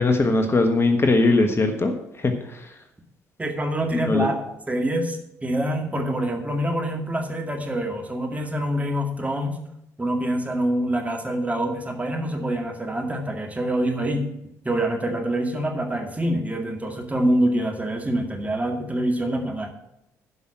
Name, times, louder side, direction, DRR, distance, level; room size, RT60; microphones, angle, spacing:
voice 1, 0.0-2.8 3.9-4.3, left 3 dB, 30° left, 6 dB, 1.3 m, -21 dB
voice 2, 3.4-4.4 4.7-9.6 10.0-14.3 14.6-19.7, right 1 dB, 20° right, 3 dB, 2.2 m, -25 dB
11.0 x 5.5 x 7.4 m, 0.82 s
hypercardioid pair, 50°, 8 cm